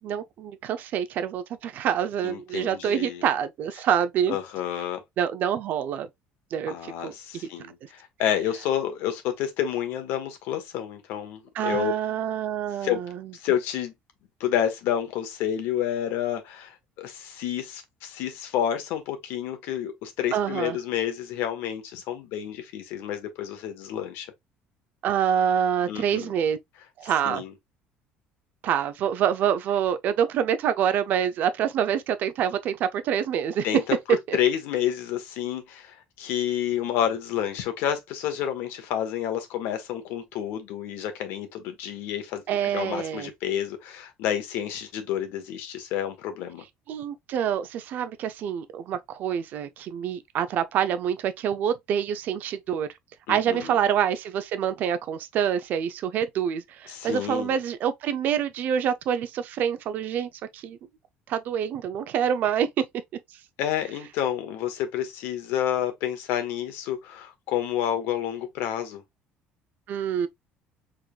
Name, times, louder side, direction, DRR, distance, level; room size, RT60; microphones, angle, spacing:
voice 1, 0.0-4.4 5.2-6.1 6.5-7.1 11.5-13.3 20.3-20.8 25.0-26.6 27.0-27.4 28.6-33.7 34.3-34.4 42.5-43.3 46.9-52.9 53.3-60.8 61.3-62.8 69.9-70.3, right 9 dB, 50° right, 0.6 m, -26 dB
voice 2, 2.2-3.2 4.3-5.0 6.7-11.9 12.8-13.0 13.3-13.9 14.4-24.3 25.9-26.3 27.2-27.5 33.6-33.8 34.1-46.6 53.3-53.8 56.9-57.6 63.6-69.0, left 10 dB, 75° left, 1.3 m, -29 dB
5.0 x 3.8 x 2.4 m
cardioid pair, 155°, 4 cm